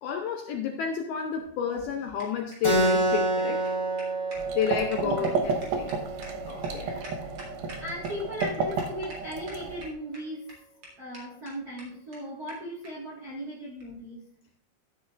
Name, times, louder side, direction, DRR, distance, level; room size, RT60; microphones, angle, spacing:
voice 1, 0.0-3.7 4.6-5.9 6.5-6.9, left 8 dB, 80° left, 3 dB, 2.2 m, -31 dB
sound 1, 1.4-8.1 8.4-8.5 8.8-9.2 9.5-10.2 10.5-10.6 10.8-10.9 11.1-11.2 11.5-11.6 11.8-11.9 12.1-12.2 12.5-12.6 12.8-12.9 13.8-13.9, equal, 30° right, 3.5 m, -46 dB
Keyboard (musical), 2.6-7.7, right 2 dB, 5° left, 3.1 m, -29 dB
sound 2, 4.4-9.9, right 4 dB, 70° right, 2.5 m, -32 dB
voice 2, 5.0-5.4 6.6-7.3 7.7-10.4 11.0-14.3, equal, 55° right, -5 dB, 1.0 m, -38 dB
14.0 x 10.0 x 2.5 m, 0.65 s
omnidirectional pair, 5.3 m